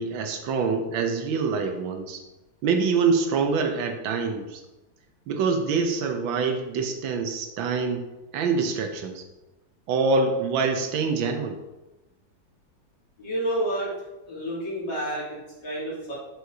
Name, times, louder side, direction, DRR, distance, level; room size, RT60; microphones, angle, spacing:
voice 1, 0.0-2.2 2.6-4.6 5.3-8.1 8.3-9.2 9.9-11.6, right 4 dB, 85° right, 5 dB, 1.6 m, -25 dB
voice 2, 13.2-13.9 14.3-16.1, right 1 dB, 65° left, -7 dB, 3.3 m, -29 dB
7.8 x 6.6 x 2.8 m, 1.0 s
omnidirectional pair, 2.1 m